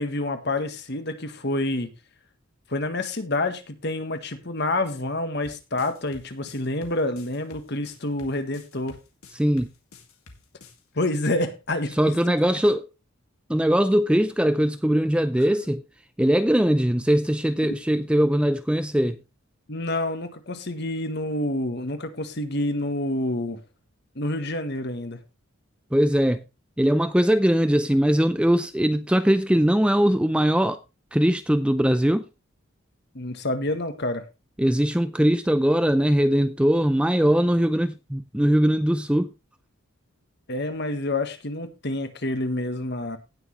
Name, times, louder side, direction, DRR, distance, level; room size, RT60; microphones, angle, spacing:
voice 1, 0.0-1.9 2.7-9.0 10.9-11.9 19.7-23.6 24.1-25.2 33.1-34.2 40.5-43.2, left 2 dB, 50° left, 1.5 m, -28 dB
sound 1, 5.4-10.8, left 3 dB, 90° left, 2.3 m, -49 dB
voice 2, 9.3-9.7 11.9-12.8 13.5-15.8 16.2-19.2 25.9-26.4 26.8-30.8 31.1-32.2 34.6-39.3, equal, 5° right, 0.4 m, -21 dB
17.5 x 6.3 x 3.2 m
head